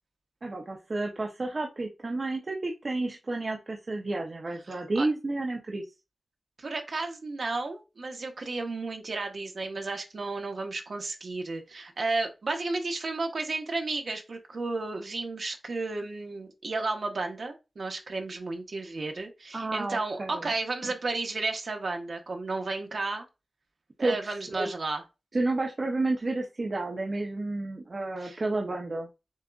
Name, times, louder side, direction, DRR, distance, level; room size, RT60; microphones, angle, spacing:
voice 1, 0.4-5.8 19.5-20.4 24.0-24.3 24.6-24.7 25.3-29.1, right 2 dB, 40° right, 0 dB, 0.7 m, -31 dB
voice 2, 4.7-5.1 6.6-23.3 24.0-25.0 28.2-28.4, right 3 dB, 60° right, 3 dB, 1.1 m, -33 dB
7.1 x 2.5 x 2.3 m, 0.27 s
wide cardioid pair, 120°, 0 cm